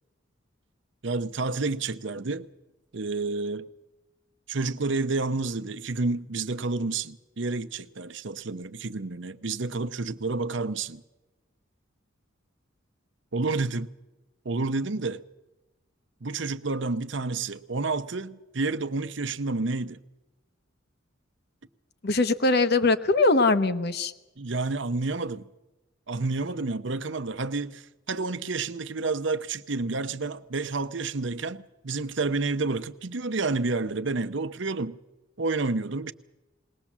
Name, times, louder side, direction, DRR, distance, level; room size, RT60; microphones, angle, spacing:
voice 1, 1.0-2.5 2.9-3.7 4.5-11.0 13.3-13.9 14.4-15.2 16.2-20.0 24.4-25.5 26.1-35.0 35.4-36.1, right 3 dB, 60° right, 0.8 m, -29 dB
voice 2, 22.0-24.1, left 3 dB, 55° left, 1.0 m, -22 dB
20.5 x 19.0 x 7.3 m
head